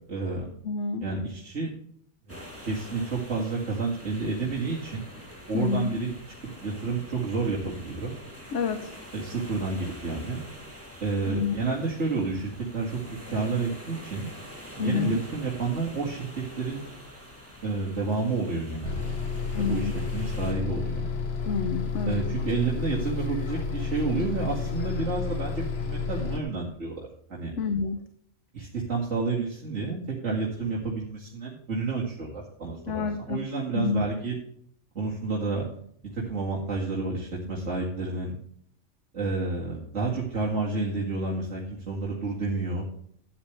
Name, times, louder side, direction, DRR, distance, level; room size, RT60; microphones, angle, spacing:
voice 1, 0.1-0.5 1.0-1.7 2.3-5.1 5.5-6.1 6.6-8.1 9.1-10.4 11.0-14.3 14.7-16.3 16.6-16.8 17.6-19.2 19.5-21.1 22.1-27.5 28.5-34.3 34.9-35.7 36.0-38.4 39.1-42.8, right 3 dB, 75° right, -5 dB, 2.4 m, -30 dB
voice 2, 0.6-1.0 5.5-6.0 8.5-8.8 11.3-11.5 14.8-15.2 19.5-19.9 21.5-22.2 27.6-28.0 32.9-33.4 33.7-34.1, left 5 dB, 75° left, 8 dB, 1.2 m, -28 dB
sound 1, 2.3-20.5, equal, 10° right, 2.6 m, -45 dB
Bus, 18.8-26.4, left 5 dB, 60° left, 1.4 m, -31 dB
12.5 x 9.6 x 3.3 m, 0.64 s
omnidirectional pair, 1.2 m